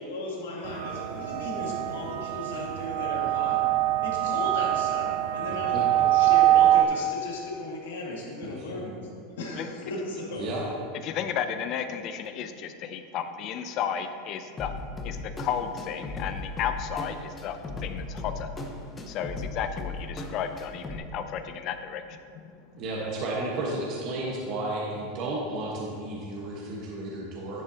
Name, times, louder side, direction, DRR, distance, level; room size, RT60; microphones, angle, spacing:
voice 1, 0.0-3.6 4.0-8.9 9.4-10.5, left 1 dB, 85° left, -2 dB, 1.9 m, -36 dB
sound 1, 0.7-6.8, right 14 dB, 75° right, 0.4 m, -24 dB
voice 2, 10.3-10.7 22.8-27.6, right 2 dB, 50° right, -4 dB, 1.3 m, -32 dB
voice 3, 11.0-18.5 19.1-22.8, left 8 dB, 45° left, 9 dB, 0.5 m, -33 dB
sound 2, 14.6-21.0, left 3 dB, 20° left, 0.9 m, -37 dB
10.5 x 6.9 x 2.8 m, 2.3 s
supercardioid pair, 120°, 0 cm